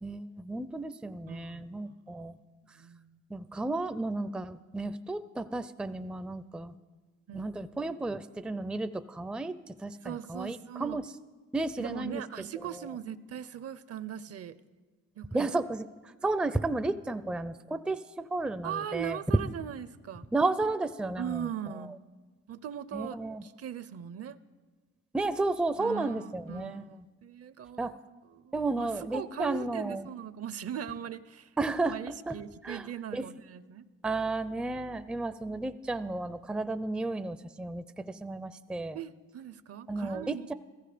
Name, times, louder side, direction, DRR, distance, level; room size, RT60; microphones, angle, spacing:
voice 1, 0.0-2.4 3.3-6.7 7.3-11.1 11.5-12.2 15.3-15.9 16.2-19.2 20.3-21.5 21.8-21.9 22.9-23.4 25.1-26.9 27.8-27.9 28.5-30.1 31.6-32.4 32.6-33.3 34.0-39.0 39.9-40.5, right 2 dB, 5° right, 12 dB, 0.4 m, -33 dB
voice 2, 1.3-2.3 2.7-3.2 7.3-7.5 10.0-11.0 11.8-14.6 15.2-15.5 18.6-20.3 21.2-22.0 22.5-24.4 25.8-28.0 28.3-31.5 31.8-33.9 38.9-40.5, right 9 dB, 50° right, 16 dB, 0.6 m, -40 dB
15.0 x 14.5 x 5.0 m, 1.3 s
cardioid pair, 90°, 30 cm